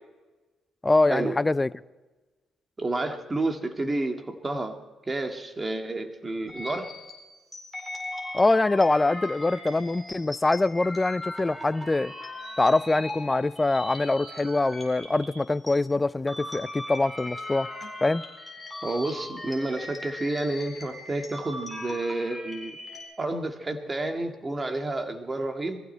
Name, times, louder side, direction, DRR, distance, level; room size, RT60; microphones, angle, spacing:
voice 1, 0.8-1.7 8.3-12.1 12.6-17.7 18.0-18.2, left 2 dB, 20° left, 0.4 m, -24 dB
voice 2, 2.8-4.8 5.1-6.9 18.8-22.8 23.2-25.8, right 2 dB, 25° right, 1.8 m, -30 dB
sound 1, 6.5-15.7 16.1-23.0, left 1 dB, 5° left, 4.3 m, -39 dB
21.0 x 15.0 x 4.5 m
cardioid pair, 90°, 0 cm